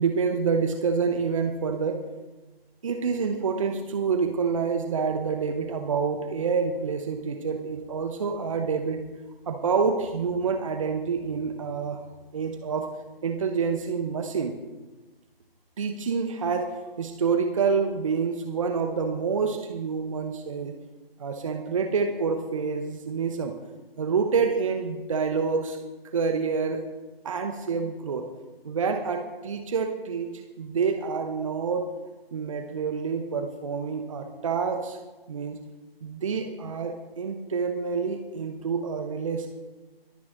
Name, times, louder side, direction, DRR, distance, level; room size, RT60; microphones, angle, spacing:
voice 1, 0.0-2.0 2.8-9.0 9.5-12.0 12.3-12.8 13.2-14.6 15.8-16.7 17.0-20.7 21.2-23.5 24.0-25.8 26.1-26.8 27.2-28.3 28.6-31.9 32.3-35.0 35.3-35.6 36.0-39.5, right 5 dB, 30° right, 6 dB, 1.0 m, -27 dB
22.5 x 9.3 x 3.7 m, 1.2 s
figure-of-eight pair, 150°, 31 cm